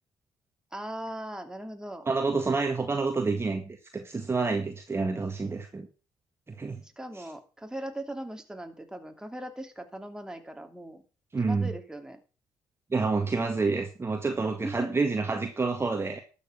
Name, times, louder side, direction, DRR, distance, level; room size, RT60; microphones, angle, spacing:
voice 1, 0.7-2.1 6.8-11.0 11.4-12.2 14.6-15.1, right 1 dB, 5° right, 5 dB, 2.8 m, -39 dB
voice 2, 2.1-5.9 6.5-6.8 11.3-11.7 12.9-16.2, right 4 dB, 30° right, 5 dB, 1.8 m, -28 dB
12.0 x 7.3 x 6.1 m, 0.35 s
supercardioid pair, 55°, 9 cm